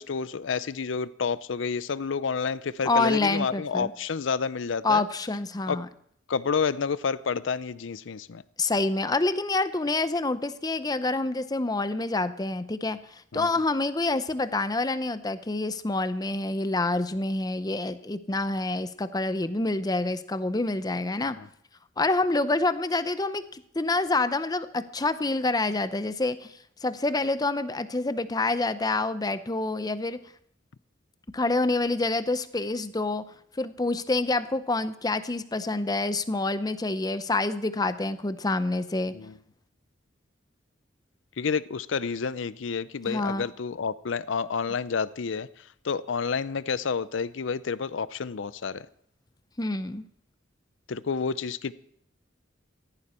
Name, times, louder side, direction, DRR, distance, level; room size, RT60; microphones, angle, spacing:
voice 1, 0.0-5.0 5.7-5.8 6.3-8.4 13.3-13.5 21.4-21.5 39.1-39.4 41.4-48.9 50.9-51.7, left 5 dB, 75° left, 0.5 m, -29 dB
voice 2, 2.8-3.9 4.8-5.9 8.6-13.0 13.3-21.4 22.0-26.5 26.8-30.2 31.3-33.2 33.6-39.1 43.1-43.5 49.6-50.0, left 2 dB, 20° left, 0.6 m, -27 dB
16.0 x 14.0 x 4.3 m
head